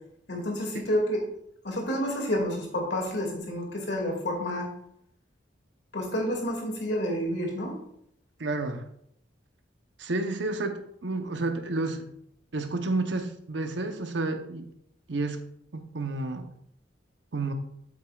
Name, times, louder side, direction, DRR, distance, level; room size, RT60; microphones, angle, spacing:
voice 1, 0.3-1.2 1.6-4.7 5.9-7.7, equal, 65° left, 0 dB, 2.2 m, -29 dB
voice 2, 8.4-8.9 10.0-12.1 12.5-14.7 15.1-15.4 15.7-16.5 17.3-17.5, right 2 dB, 75° right, 7 dB, 0.8 m, -30 dB
8.4 x 7.9 x 2.4 m, 0.71 s
head